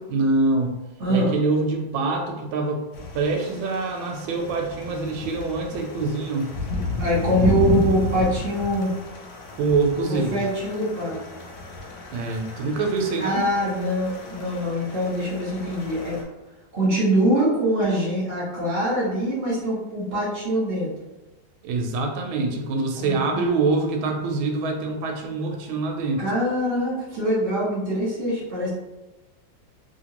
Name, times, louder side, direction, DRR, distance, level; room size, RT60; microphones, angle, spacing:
voice 1, 0.1-0.7 1.1-2.9 3.1-6.5 9.5-10.4 12.1-13.4 21.6-26.2, right 3 dB, 85° right, 2 dB, 1.4 m, -25 dB
voice 2, 1.0-1.3 7.0-8.9 10.1-11.2 13.2-16.2 16.7-20.9 22.9-23.5 26.2-28.7, right 1 dB, 20° right, -7 dB, 1.1 m, -24 dB
sound 1, 2.9-16.2, left 3 dB, 70° left, 1.2 m, -32 dB
3.0 x 2.8 x 2.9 m, 1.1 s
omnidirectional pair, 2.1 m